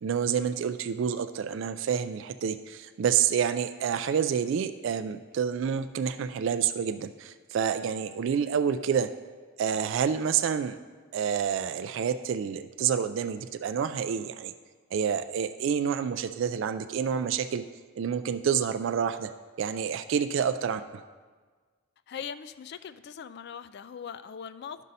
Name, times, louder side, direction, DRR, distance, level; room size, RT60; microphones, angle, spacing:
voice 1, 0.0-9.1 9.6-10.8 11.1-14.5 14.9-17.6 18.0-19.3 19.6-21.0, right 7 dB, 65° right, 10 dB, 0.3 m, -28 dB
voice 2, 22.1-24.8, left 7 dB, 50° left, 13 dB, 0.3 m, -40 dB
12.5 x 5.4 x 4.1 m, 1.5 s
head